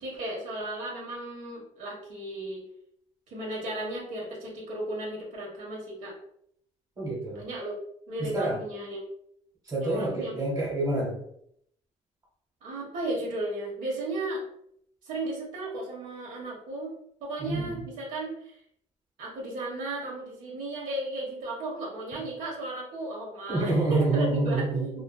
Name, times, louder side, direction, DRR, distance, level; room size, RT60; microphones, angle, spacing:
voice 1, 0.0-2.7 3.3-6.1 7.3-7.7 8.1-9.0 9.8-10.4 12.6-14.4 15.0-16.9 17.2-18.6 19.2-24.6, right 1 dB, 70° right, -3 dB, 0.9 m, -35 dB
voice 2, 7.0-7.5 8.2-8.6 9.7-11.2 17.4-17.8 23.5-24.9, right 2 dB, 25° right, -5 dB, 1.1 m, -27 dB
2.6 x 2.4 x 2.2 m, 0.70 s
cardioid pair, 155°, 14 cm